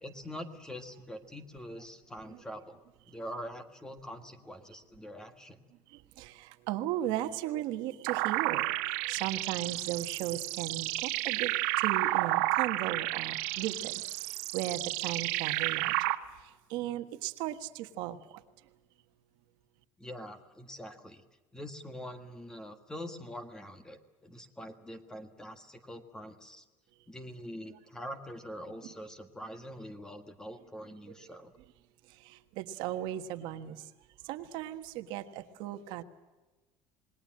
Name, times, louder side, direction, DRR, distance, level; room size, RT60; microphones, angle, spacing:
voice 1, 0.0-2.8 3.1-5.6 20.0-21.2 21.5-26.6 27.1-31.5, equal, 5° left, 9 dB, 1.5 m, -44 dB
voice 2, 5.9-14.0 14.3-16.1 16.4-18.4 31.1-31.2 32.1-33.9 34.2-36.0, right 13 dB, 60° right, 8 dB, 1.4 m, -37 dB
sound 1, 8.1-16.1, right 19 dB, 90° right, 1.5 m, -31 dB
27.5 x 20.5 x 7.6 m, 1.2 s
cardioid pair, 165°, 9 cm